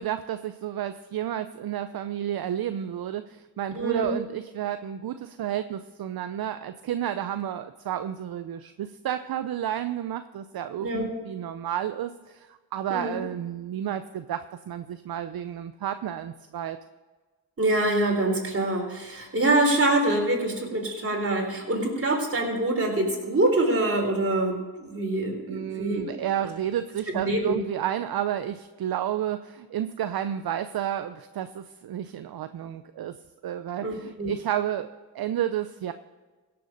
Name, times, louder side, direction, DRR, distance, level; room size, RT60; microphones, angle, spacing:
voice 1, 0.0-16.8 25.5-33.2 33.4-34.9 35.1-35.9, right 11 dB, 65° right, 11 dB, 0.6 m, -31 dB
voice 2, 3.8-4.1 10.8-11.1 12.9-13.2 17.6-26.1 27.1-27.6 33.8-34.3, right 1 dB, 35° right, 0 dB, 4.0 m, -25 dB
16.5 x 7.0 x 5.2 m, 1.3 s
cardioid pair, 65°, 40 cm